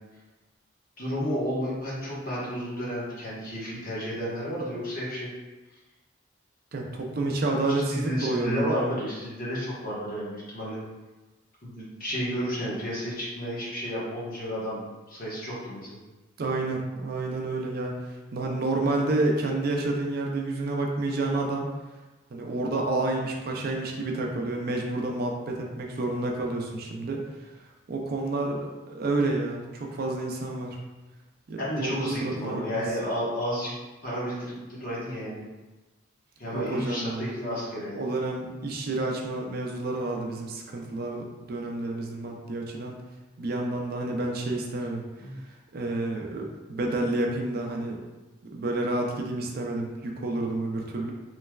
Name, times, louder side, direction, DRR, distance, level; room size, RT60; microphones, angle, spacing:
voice 1, 1.0-5.3 7.7-10.8 11.6-14.8 15.1-16.0 31.6-33.7 34.0-35.5 36.4-38.0 45.2-45.4, equal, 50° left, -7 dB, 1.1 m, -32 dB
voice 2, 6.7-8.9 16.4-21.7 22.3-27.2 27.9-30.8 31.5-32.8 36.5-37.3 37.9-43.0 43.4-45.0 45.7-48.0 48.5-51.1, right 2 dB, 50° right, 1 dB, 0.4 m, -29 dB
3.2 x 3.1 x 2.3 m, 1.2 s
head